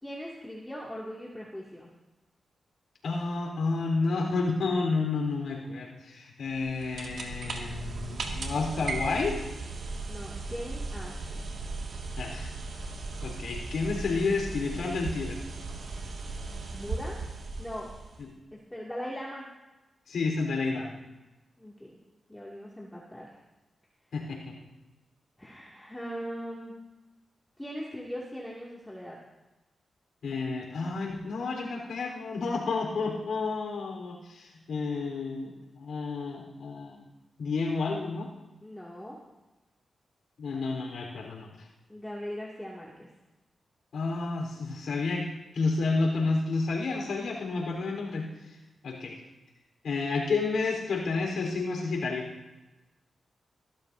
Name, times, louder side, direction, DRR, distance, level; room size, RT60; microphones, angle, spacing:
voice 1, 0.0-1.9 10.1-11.5 16.7-17.2 17.6-17.9 18.5-19.5 21.6-22.0 22.3-23.3 25.4-26.7 27.6-29.2 38.6-39.2 41.9-43.1, equal, 10° left, -5 dB, 2.3 m, -40 dB
voice 2, 3.0-9.4 12.2-12.5 13.2-15.4 18.2-18.3 20.1-20.9 24.1-24.6 30.2-37.0 37.4-38.3 40.4-41.7 43.9-48.6 48.8-49.2 49.8-52.3, left 3 dB, 85° left, 0 dB, 3.9 m, -30 dB
sound 1, 6.5-18.3, right 3 dB, 75° right, 2.0 m, -37 dB
22.5 x 13.5 x 2.7 m, 1.1 s
cardioid pair, 70°, 0 cm